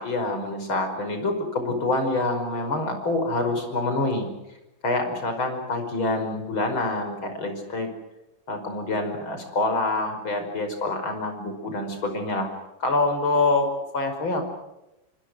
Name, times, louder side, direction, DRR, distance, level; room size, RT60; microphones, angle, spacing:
voice 1, 0.0-4.3 4.8-7.9 8.5-12.5 12.8-14.4, left 2 dB, 90° left, 6 dB, 6.2 m, -26 dB
27.5 x 25.5 x 6.4 m, 0.93 s
omnidirectional pair, 2.2 m